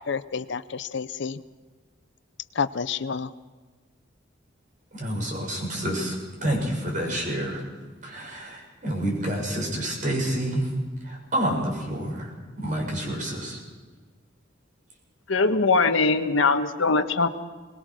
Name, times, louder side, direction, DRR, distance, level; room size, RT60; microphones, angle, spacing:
voice 1, 0.1-1.4 2.5-3.3, left 6 dB, 60° left, 14 dB, 0.6 m, -29 dB
voice 2, 4.9-7.6 8.0-10.7 11.0-13.6, right 1 dB, 40° right, 0 dB, 6.7 m, -28 dB
voice 3, 15.3-17.3, left 3 dB, 85° left, 8 dB, 1.3 m, -21 dB
22.0 x 20.0 x 6.2 m, 1.5 s
head